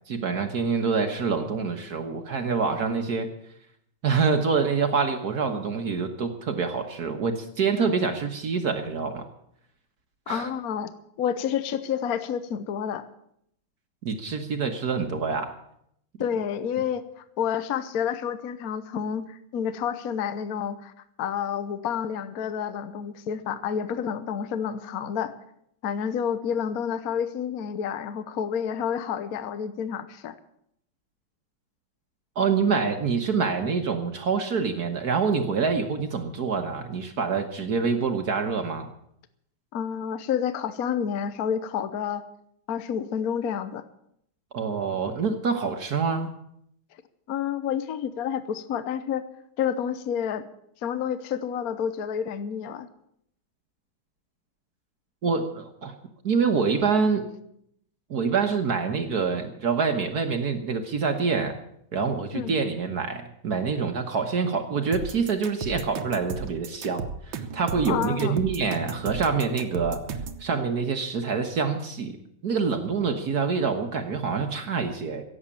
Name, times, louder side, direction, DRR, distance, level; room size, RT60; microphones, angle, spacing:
voice 1, 0.1-3.3 4.0-9.3 10.3-10.5 14.0-15.6 32.3-38.9 44.5-46.3 55.2-55.9 56.2-57.2 58.1-61.6 61.9-70.0 70.4-72.1 72.4-75.2, right 5 dB, 55° right, 6 dB, 1.6 m, -26 dB
voice 2, 10.3-10.9 11.2-13.1 16.2-20.9 21.2-25.3 25.8-30.3 39.7-42.2 42.7-43.8 47.3-49.3 49.6-50.5 50.8-52.9 62.3-62.5 67.9-68.4, left 8 dB, 55° left, 12 dB, 1.2 m, -29 dB
sound 1, 64.9-70.4, right 5 dB, 75° right, 1.8 m, -34 dB
16.5 x 8.1 x 8.6 m, 0.73 s
omnidirectional pair, 2.2 m